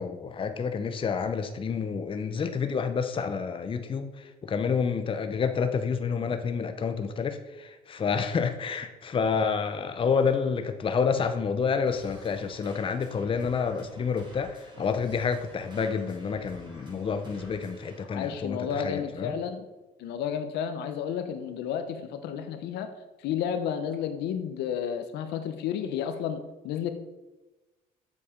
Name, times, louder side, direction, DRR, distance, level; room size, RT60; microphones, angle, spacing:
voice 1, 0.0-19.4, left 5 dB, 30° left, 8 dB, 0.7 m, -29 dB
sound 1, 11.9-18.0, equal, 25° right, 3.6 m, -50 dB
voice 2, 18.0-19.7 20.0-22.9 23.2-26.9, left 8 dB, 85° left, 8 dB, 1.0 m, -32 dB
8.3 x 7.1 x 5.2 m, 1.1 s
cardioid pair, 110°, 17 cm